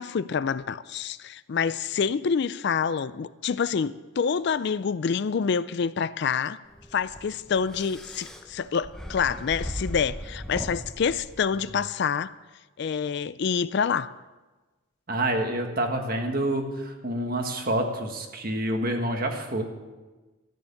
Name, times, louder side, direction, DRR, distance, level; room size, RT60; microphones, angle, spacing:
voice 1, 0.0-6.6 6.9-12.3 12.8-14.1, left 6 dB, 55° left, 16 dB, 0.4 m, -27 dB
sound 1, 6.7-11.9, equal, 5° left, 1.0 m, -38 dB
voice 2, 15.1-19.6, right 1 dB, 45° right, 4 dB, 1.6 m, -27 dB
14.0 x 9.7 x 7.1 m, 1.2 s
head